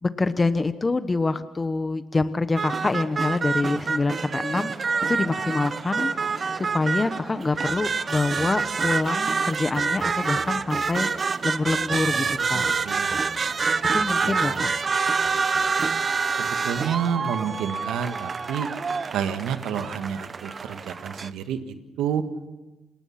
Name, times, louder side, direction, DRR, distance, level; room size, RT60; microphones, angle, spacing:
voice 1, 0.0-4.7 5.1-12.7 13.9-14.7, left 3 dB, 25° left, 12 dB, 1.1 m, -26 dB
sound 1, 2.6-21.3, right 5 dB, 35° right, 0.8 m, -27 dB
voice 2, 12.0-13.2 14.2-14.6 16.4-18.7 19.1-22.2, right 8 dB, 85° right, 8 dB, 1.6 m, -30 dB
28.5 x 20.0 x 5.9 m, 1.1 s
cardioid pair, 90°, 0 cm